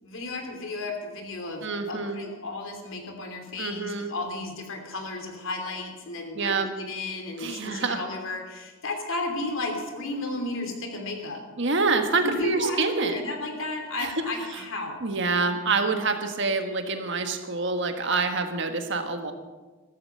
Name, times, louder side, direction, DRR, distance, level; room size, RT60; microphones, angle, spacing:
voice 1, 0.0-11.4 12.2-15.1, left 2 dB, 70° left, 4 dB, 2.9 m, -33 dB
voice 2, 1.6-2.2 3.6-4.1 6.3-6.7 7.4-8.0 11.6-13.2 14.0-14.1 14.5-14.6 15.0-19.3, right 4 dB, 60° right, 6 dB, 1.6 m, -26 dB
14.5 x 14.0 x 5.7 m, 1.3 s
head